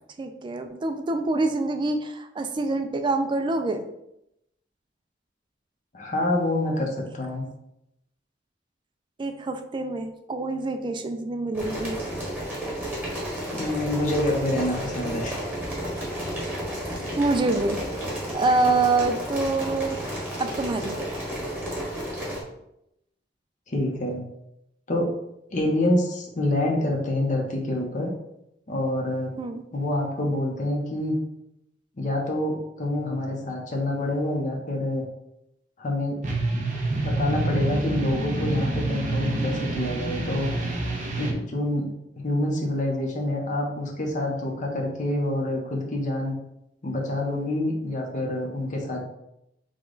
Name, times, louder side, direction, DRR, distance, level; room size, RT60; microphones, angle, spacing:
voice 1, 0.2-3.8 9.2-12.0 17.2-17.8 18.3-20.0 20.4-21.1 29.4-29.6, right 3 dB, 25° right, 7 dB, 0.4 m, -26 dB
voice 2, 5.9-7.5 13.5-15.5 23.7-24.2 24.9-25.1 25.5-28.1 28.7-29.4 29.7-31.2 32.0-35.0 35.8-36.2 36.5-40.5 41.2-46.4 46.8-49.0, left 1 dB, 45° left, 0 dB, 0.8 m, -27 dB
sound 1, 11.5-22.4, equal, 10° right, 1.4 m, -32 dB
sound 2, 36.2-41.3, right 2 dB, 45° right, 0.8 m, -27 dB
4.9 x 2.3 x 3.8 m, 0.82 s
head